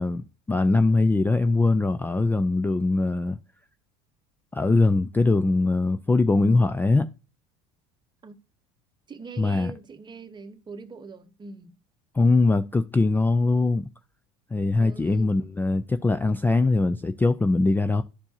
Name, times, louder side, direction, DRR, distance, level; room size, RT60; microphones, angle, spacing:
voice 1, 0.0-3.4 4.5-7.1 9.4-9.7 12.1-13.9 14.5-18.0, left 3 dB, 10° left, 0.3 m, -22 dB
voice 2, 9.1-11.7 14.8-15.3, right 4 dB, 25° right, 0.9 m, -42 dB
11.5 x 4.5 x 2.8 m
hypercardioid pair, 80°, 18 cm